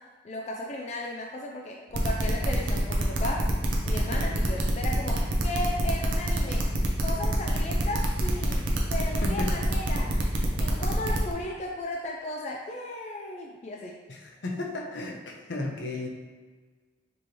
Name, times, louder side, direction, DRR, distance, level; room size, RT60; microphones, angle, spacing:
voice 1, 0.2-3.6 3.8-6.8 7.0-8.6 8.9-10.2 10.6-14.0, left 1 dB, 35° left, 0 dB, 0.3 m, -35 dB
sound 1, 1.9-11.3, right 2 dB, 80° right, 0.7 m, -28 dB
voice 2, 14.1-16.1, left 2 dB, 70° left, 1 dB, 0.7 m, -34 dB
5.3 x 3.1 x 2.9 m, 1.4 s
head